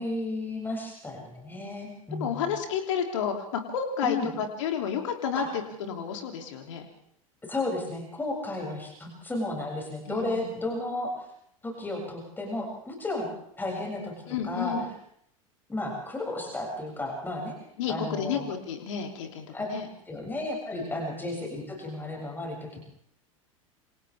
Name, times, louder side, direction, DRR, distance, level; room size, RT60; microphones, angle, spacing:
voice 1, 0.0-2.5 4.0-4.3 5.3-5.5 7.5-11.1 11.6-13.3 13.6-14.1 14.4-14.8 15.7-17.5 17.9-18.4 19.5-19.7 20.1-22.8, left 2 dB, 10° left, 0 dB, 7.3 m, -33 dB
voice 2, 2.2-6.8 10.1-10.5 14.3-14.8 17.8-19.9 20.7-20.9, left 7 dB, 60° left, 3 dB, 3.2 m, -31 dB
28.0 x 27.0 x 3.6 m, 0.72 s
figure-of-eight pair, 80°, 18 cm